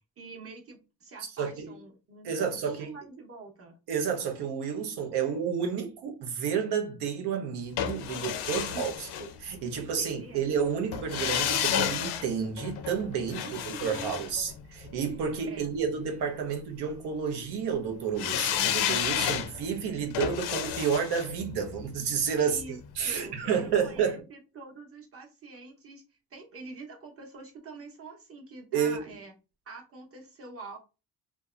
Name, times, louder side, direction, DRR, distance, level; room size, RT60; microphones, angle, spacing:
voice 1, 0.2-3.7 8.7-9.3 10.0-10.5 13.4-14.2 15.5-15.7 22.5-26.0 26.3-29.3 29.7-30.8, right 3 dB, 35° right, 0.9 m, -45 dB
voice 2, 1.4-1.8 2.2-2.9 3.9-8.9 9.4-22.6 23.0-24.3 28.7-29.0, right 7 dB, 80° right, 0.8 m, -30 dB
sound 1, 7.8-9.9 10.9-15.2 18.2-23.2 23.5-23.6, left 9 dB, 90° left, 0.5 m, -32 dB
2.7 x 2.2 x 2.4 m
cardioid pair, 120°, 39 cm